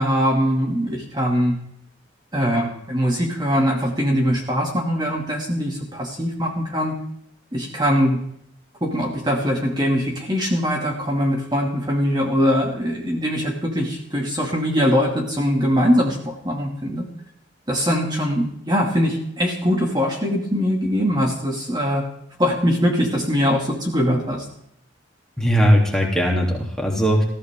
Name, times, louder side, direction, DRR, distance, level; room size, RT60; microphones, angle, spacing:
voice 1, 0.0-1.6 2.3-6.9 7.5-8.2 8.8-17.0 17.7-22.0 22.4-24.5, equal, 20° right, -1 dB, 2.5 m, -22 dB
voice 2, 25.4-27.2, equal, 5° left, -2 dB, 3.3 m, -18 dB
21.0 x 15.0 x 3.8 m, 0.72 s
head